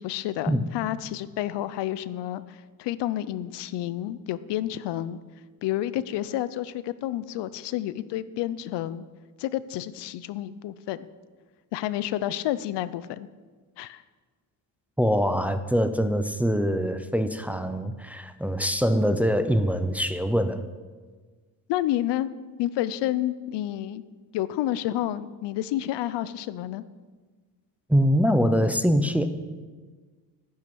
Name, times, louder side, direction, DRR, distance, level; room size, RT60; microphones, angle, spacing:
voice 1, 0.0-5.2 5.6-9.1 9.4-11.0 11.7-13.3 13.8-14.0 21.7-22.3 22.6-24.0 24.3-26.8, left 13 dB, 85° left, 15 dB, 0.7 m, -30 dB
voice 2, 15.0-20.7 27.9-29.3, equal, 5° right, 9 dB, 0.6 m, -24 dB
10.5 x 10.5 x 6.2 m, 1.4 s
cardioid pair, 120°, 41 cm